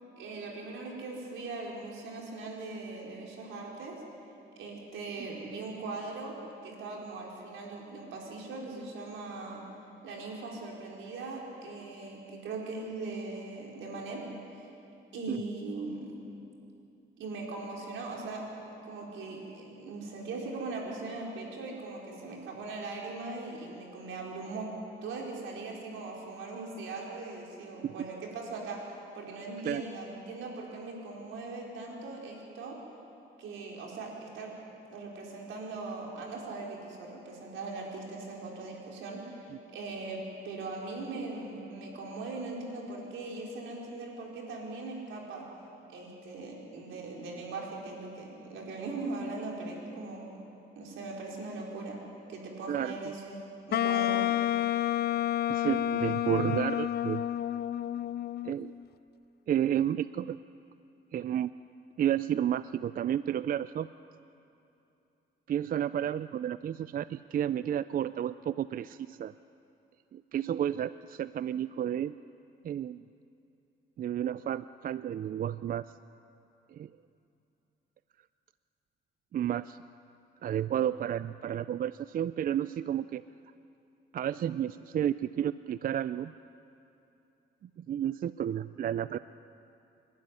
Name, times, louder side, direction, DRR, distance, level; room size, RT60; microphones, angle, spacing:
voice 1, 0.2-4.0 4.6-6.3 6.6-9.6 10.0-14.2 14.5-14.7 15.1-16.1 17.2-18.4 18.8-24.7 25.0-28.8 29.1-32.8 33.4-34.5 34.9-39.4 39.7-45.5 45.9-50.3 50.8-52.0 52.3-54.2, right 3 dB, 80° right, -1 dB, 4.7 m, -40 dB
voice 2, 52.7-53.1 55.5-57.3 58.4-58.7 59.5-60.4 61.1-61.5 62.0-63.9 65.5-69.3 70.1-72.1 72.6-73.0 74.0-75.8 76.7-76.9 79.3-79.8 80.4-83.2 84.1-86.3 87.8-89.2, right 10 dB, 45° right, 15 dB, 0.4 m, -31 dB
Wind instrument woodwind instrument, 53.7-58.7, left 12 dB, 55° left, 0.5 m, -30 dB
27.0 x 12.0 x 9.7 m, 2.8 s
cardioid pair, 90°, 20 cm